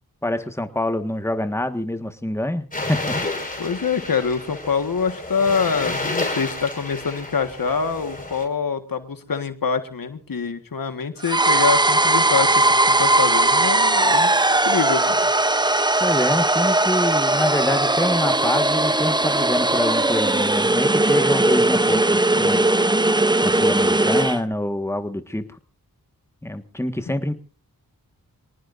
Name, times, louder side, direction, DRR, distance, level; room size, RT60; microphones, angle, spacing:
voice 1, 0.2-3.2 16.0-22.7 23.4-25.4 26.4-27.3, left 1 dB, 5° left, 8 dB, 1.6 m, -26 dB
sound 1, 2.7-8.4, left 2 dB, 25° left, 5.4 m, -30 dB
voice 2, 3.6-14.3 14.6-15.3, left 5 dB, 70° left, 9 dB, 1.7 m, -25 dB
sound 2, 11.2-24.4, right 2 dB, 10° right, 0.8 m, -19 dB
27.0 x 19.0 x 2.6 m, 0.36 s
cardioid pair, 45°, 36 cm